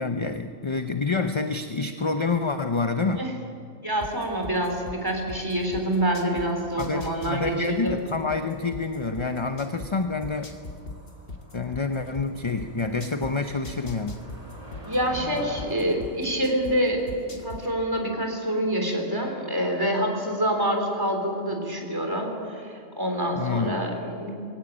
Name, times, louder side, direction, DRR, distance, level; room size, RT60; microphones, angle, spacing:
voice 1, 0.0-3.3 6.8-10.5 11.5-14.2 23.3-23.8, left 4 dB, 30° left, 7 dB, 0.6 m, -27 dB
voice 2, 3.8-8.0 14.8-24.3, equal, 15° right, 2 dB, 3.6 m, -26 dB
sound 1, 4.0-6.5 6.8-9.9 10.2-13.3 13.6-16.7 17.1-17.6, left 3 dB, 45° left, 1.8 m, -39 dB
Motor vehicle (road), 7.8-17.8, equal, 65° right, 6.8 m, -46 dB
21.5 x 16.5 x 8.8 m, 2.3 s
omnidirectional pair, 1.4 m